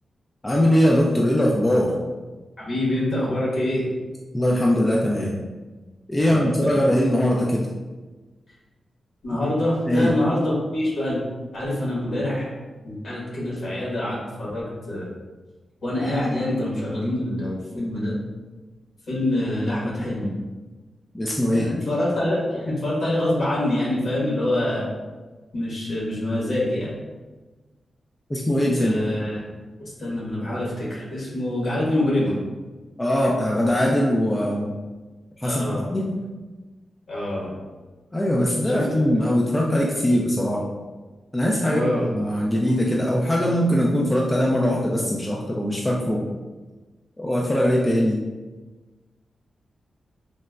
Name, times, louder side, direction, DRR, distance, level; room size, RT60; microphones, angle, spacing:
voice 1, 0.4-2.0 4.3-5.4 6.1-7.7 9.9-10.1 21.1-21.7 28.3-28.9 33.0-34.7 35.4-36.2 38.1-40.7 41.3-41.8 42.1-46.2 47.2-48.2, equal, 15° left, -2 dB, 0.3 m, -21 dB
voice 2, 2.6-3.9 6.2-6.7 9.2-11.2 11.5-12.4 12.8-15.1 15.8-18.1 19.1-20.3 21.5-24.9 25.5-27.0 28.8-29.5 29.8-32.4 35.4-35.9 37.1-37.6 38.6-38.8 41.6-42.1, left 1 dB, 60° left, -6 dB, 1.2 m, -25 dB
3.9 x 2.1 x 2.3 m, 1.2 s
wide cardioid pair, 105°, 0 cm